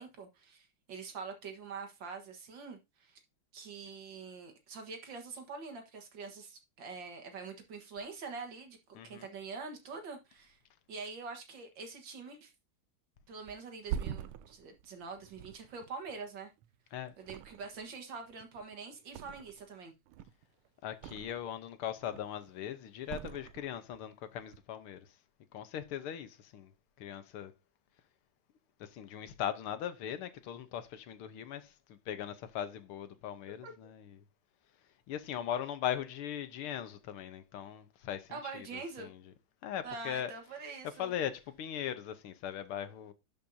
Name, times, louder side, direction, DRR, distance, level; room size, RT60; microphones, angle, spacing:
voice 1, 0.0-3.2 3.5-10.6 10.9-12.5 13.3-16.5 17.2-19.9 33.6-33.7 38.3-39.1 39.8-41.1, right 4 dB, 60° right, 2.1 m, -45 dB
Thump thud, 13.5-16.8 17.2-18.0 18.3-19.7 20.1-21.6 22.0-22.5 23.0-24.0 24.4-24.6, right 9 dB, 85° right, 1.5 m, -44 dB
voice 2, 20.8-25.0 25.5-26.7 27.0-27.5 28.8-34.2 35.1-38.7 39.0-39.1 39.6-40.3 41.0-43.1, left 10 dB, 85° left, 1.8 m, -39 dB
11.5 x 5.4 x 2.7 m
omnidirectional pair, 2.3 m